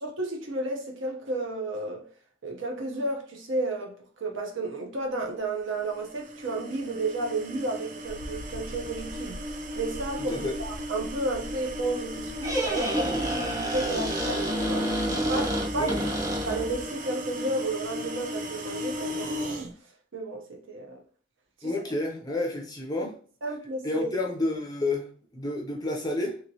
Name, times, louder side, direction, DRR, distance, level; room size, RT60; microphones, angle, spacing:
voice 1, 0.0-2.0 2.4-3.9 4.2-14.9 15.3-16.1 16.4-19.6 20.1-21.0 21.6-21.7 23.4-24.1, right 2 dB, 70° right, 0.7 m, -32 dB
sound 1, 5.8-19.7, equal, 40° right, 0.4 m, -36 dB
Mechanical fan, 8.0-13.4, left 1 dB, 75° left, 0.4 m, -43 dB
Squeak, 12.2-16.8, equal, 15° right, 0.8 m, -29 dB
voice 2, 15.7-16.1 21.6-23.1 23.8-26.4, left 2 dB, 20° left, 0.5 m, -30 dB
3.0 x 2.9 x 2.7 m
head